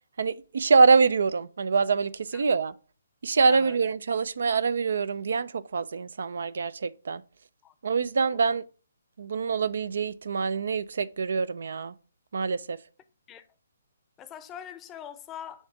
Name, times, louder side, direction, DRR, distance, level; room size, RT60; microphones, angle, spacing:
voice 1, 0.2-2.7 3.2-7.2 7.8-8.6 9.2-11.9 12.3-12.8, right 4 dB, 60° right, 0.4 m, -25 dB
voice 2, 14.2-15.7, left 9 dB, 15° left, 0.6 m, -43 dB
7.1 x 3.4 x 5.7 m
figure-of-eight pair, 135°, 0 cm